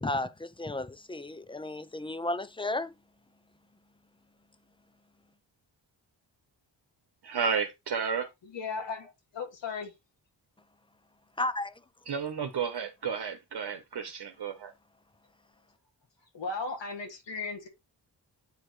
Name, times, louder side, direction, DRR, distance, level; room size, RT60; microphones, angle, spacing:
voice 1, 0.0-2.9 11.4-11.7, left 2 dB, 10° left, 0.7 m, -33 dB
voice 2, 7.2-8.3 12.1-14.7, right 6 dB, 65° right, 1.1 m, -32 dB
voice 3, 8.4-9.9 16.3-17.7, left 4 dB, 85° left, 2.4 m, -36 dB
8.9 x 4.5 x 3.2 m
wide cardioid pair, 90°, 43 cm